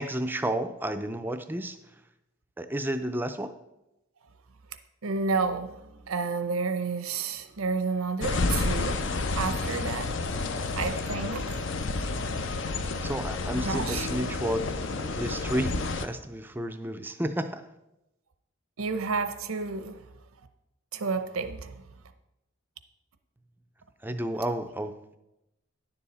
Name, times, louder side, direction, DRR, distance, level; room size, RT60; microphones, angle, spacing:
voice 1, 0.0-1.8 2.6-3.5 13.0-14.7 15.0-17.6 24.0-25.2, right 1 dB, 10° right, 0.4 m, -31 dB
voice 2, 5.0-5.7 6.1-9.0 9.4-10.1 10.8-11.6 13.7-14.3 18.8-20.0 20.9-21.7, right 4 dB, 85° right, 0.7 m, -30 dB
sound 1, 8.2-16.1, left 3 dB, 60° left, 0.6 m, -30 dB
10.5 x 7.0 x 4.2 m
head